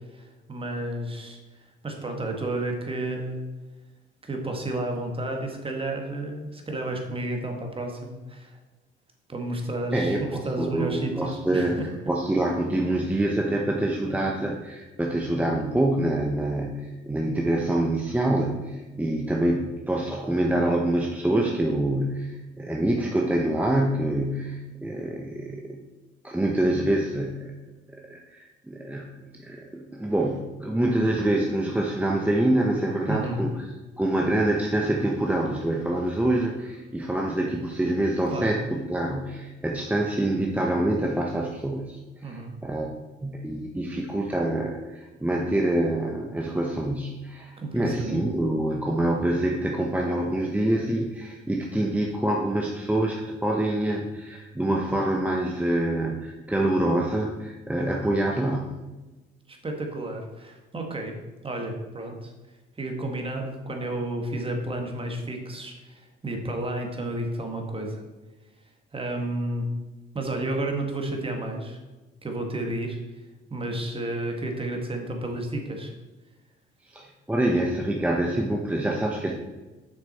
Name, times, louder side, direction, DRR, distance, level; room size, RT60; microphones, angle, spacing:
voice 1, 0.1-3.4 4.2-8.6 9.3-12.1 33.1-33.5 38.3-38.5 42.2-42.5 47.6-48.2 59.5-61.2 61.4-62.3 62.8-68.0 68.9-69.7 70.1-71.8 72.2-73.2 73.5-75.9, right 1 dB, 25° right, 2 dB, 1.7 m, -31 dB
voice 2, 9.9-11.8 12.1-25.8 26.2-33.5 34.0-42.9 43.2-58.8 76.9-79.3, right 1 dB, 5° right, 0 dB, 0.9 m, -26 dB
7.1 x 6.0 x 4.2 m, 1.2 s
cardioid pair, 90°, 20 cm